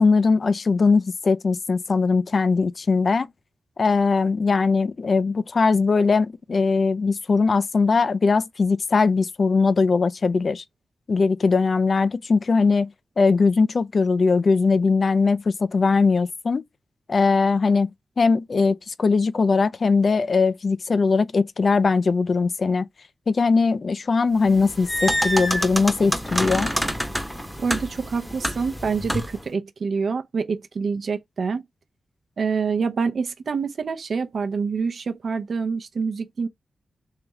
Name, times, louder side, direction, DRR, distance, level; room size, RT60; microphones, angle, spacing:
voice 1, 0.0-3.3 3.8-10.6 11.1-12.9 13.2-16.6 17.1-22.9 23.3-26.7, left 4 dB, 50° left, 0.3 m, -20 dB
sound 1, 24.5-29.4, equal, 5° left, 0.8 m, -27 dB
voice 2, 27.6-31.6 32.4-36.5, right 5 dB, 65° right, 0.6 m, -26 dB
3.2 x 3.0 x 3.4 m
cardioid pair, 75°, 0 cm